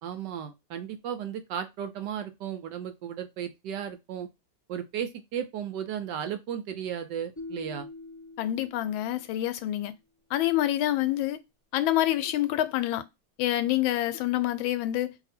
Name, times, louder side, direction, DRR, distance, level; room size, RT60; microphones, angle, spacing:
voice 1, 0.0-4.3 4.7-7.9, right 9 dB, 75° right, 1.1 m, -35 dB
sound 1, 7.4-9.5, left 2 dB, 15° left, 0.6 m, -44 dB
voice 2, 8.4-9.9 10.3-11.4 11.7-13.0 13.4-15.1, left 14 dB, 85° left, 1.4 m, -27 dB
2.9 x 2.6 x 4.2 m
omnidirectional pair, 2.1 m